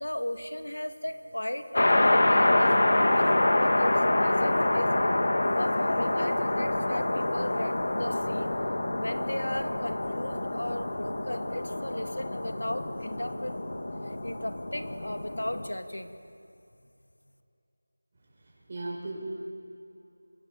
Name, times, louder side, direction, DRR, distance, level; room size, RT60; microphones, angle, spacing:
voice 1, 0.0-4.9 5.4-8.5 9.0-13.6 14.0-16.1, left 1 dB, 85° left, 7 dB, 2.2 m, -36 dB
sound 1, 1.8-15.7, left 1 dB, 60° left, 2.6 m, -26 dB
voice 2, 18.4-19.2, right 2 dB, 30° right, -2 dB, 7.7 m, -37 dB
26.5 x 25.0 x 7.7 m, 2.7 s
figure-of-eight pair, 170°, 0 cm